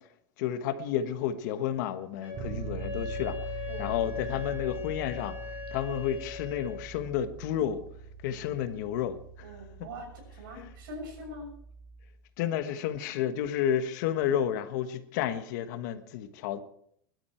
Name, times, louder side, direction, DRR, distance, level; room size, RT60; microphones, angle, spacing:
voice 1, 0.4-3.5 3.8-5.4 5.7-7.8 8.2-9.2 10.6-10.7 12.4-16.6, left 10 dB, 60° left, 1.4 m, -31 dB
Wind instrument woodwind instrument, 2.2-6.9, left 7 dB, 15° right, 6.3 m, -40 dB
Bass guitar, 2.3-12.2, right 5 dB, 35° right, 6.9 m, -43 dB
voice 2, 9.4-11.5, equal, 75° right, 6.7 m, -43 dB
21.0 x 12.5 x 4.5 m
supercardioid pair, 160°, 11 cm